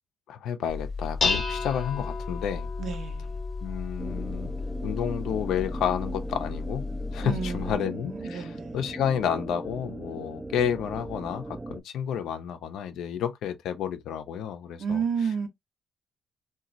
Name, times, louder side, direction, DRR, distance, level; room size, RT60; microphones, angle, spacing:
voice 1, 0.3-2.7 3.6-4.5 4.8-15.0, left 9 dB, 80° left, 0.5 m, -31 dB
Dishes pots and pans, 0.7-7.8, left 4 dB, 50° left, 0.7 m, -32 dB
voice 2, 2.8-3.4 7.2-8.8 14.8-15.5, right 6 dB, 65° right, 0.7 m, -31 dB
sound 1, 4.0-11.8, right 2 dB, 15° right, 0.3 m, -39 dB
2.9 x 2.3 x 2.5 m
cardioid pair, 90°, 0 cm